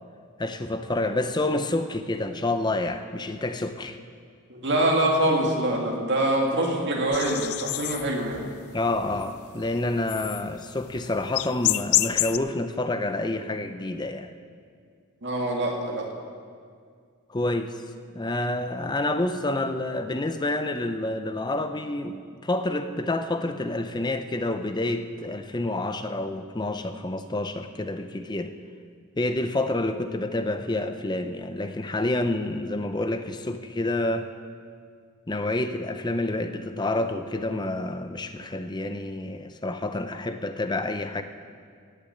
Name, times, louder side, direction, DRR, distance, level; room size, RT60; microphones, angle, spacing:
voice 1, 0.4-4.0 8.7-14.3 17.3-17.7 18.1-28.5 29.2-34.3 35.3-41.2, left 2 dB, 20° left, 9 dB, 0.5 m, -28 dB
voice 2, 4.5-8.4 15.2-16.1, right 1 dB, 50° right, -1 dB, 2.3 m, -24 dB
sound 1, 7.1-12.4, left 16 dB, 70° left, 0.4 m, -28 dB
17.5 x 6.8 x 8.5 m, 2.1 s
head